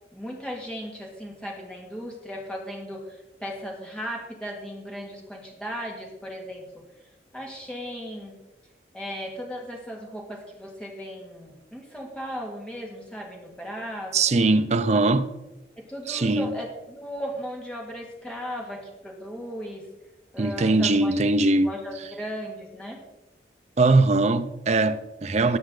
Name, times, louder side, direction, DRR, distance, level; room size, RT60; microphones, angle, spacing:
voice 1, 0.1-6.8 7.3-8.4 8.9-14.2 14.6-15.0 15.8-19.9 20.3-21.2 21.6-23.0, equal, 5° left, 2.1 m, -36 dB
voice 2, 14.1-15.3 16.1-16.5 20.4-21.7 23.8-25.6, right 2 dB, 40° right, 0.5 m, -21 dB
18.0 x 6.2 x 3.8 m
head